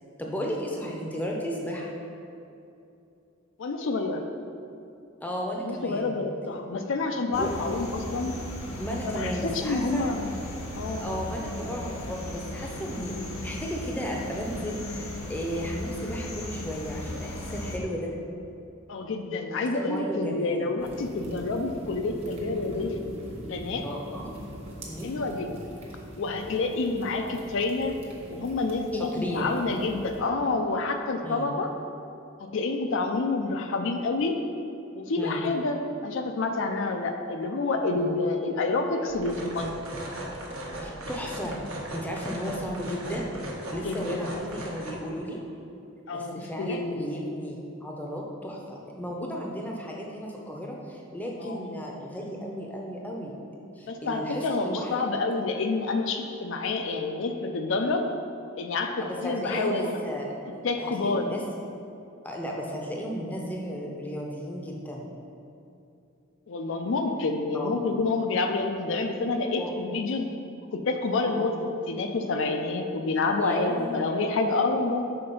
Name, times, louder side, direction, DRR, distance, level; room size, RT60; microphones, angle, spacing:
voice 1, 0.2-1.9 5.2-6.2 7.4-7.5 8.8-10.1 11.0-13.1 13.4-18.1 19.7-20.7 23.8-24.3 24.9-25.1 29.0-29.5 31.2-31.5 35.2-35.4 37.9-38.1 40.8-41.6 41.9-43.3 43.7-45.4 46.1-53.3 53.8-55.1 59.0-61.4 62.2-65.1 67.5-67.7 69.6-69.7 71.2-71.5 73.4-74.0, equal, 10° left, -1 dB, 0.6 m, -34 dB
voice 2, 3.6-4.3 5.6-8.3 9.0-10.4 10.8-11.0 18.9-23.1 23.4-23.8 25.0-25.6 26.2-28.0 28.3-31.7 32.4-34.4 34.9-39.8 43.8-44.4 46.1-47.1 51.4-51.6 53.9-58.1 58.6-60.0 60.6-61.3 66.5-70.3 70.7-75.1, left 3 dB, 65° left, 4 dB, 0.4 m, -28 dB
sound 1, 7.3-17.8, left 1 dB, 85° left, 0.9 m, -37 dB
sound 2, 20.8-30.2, equal, 30° right, 1.0 m, -42 dB
sound 3, 39.1-44.9, right 1 dB, 80° right, 1.1 m, -37 dB
5.7 x 3.8 x 5.3 m, 2.7 s
head